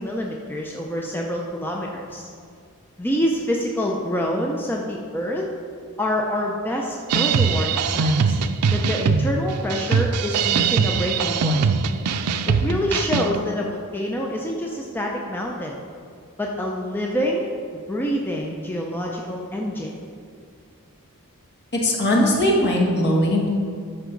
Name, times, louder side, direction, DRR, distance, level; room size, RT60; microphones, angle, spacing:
voice 1, 0.0-2.3 3.0-5.5 6.0-8.4 8.7-11.7 12.5-15.8 16.4-20.0, equal, 10° left, -1 dB, 0.6 m, -26 dB
sound 1, 7.1-13.4, right 5 dB, 90° right, 0.5 m, -22 dB
voice 2, 21.7-23.5, left 1 dB, 50° left, -2 dB, 1.6 m, -19 dB
13.0 x 5.5 x 3.9 m, 2.2 s
head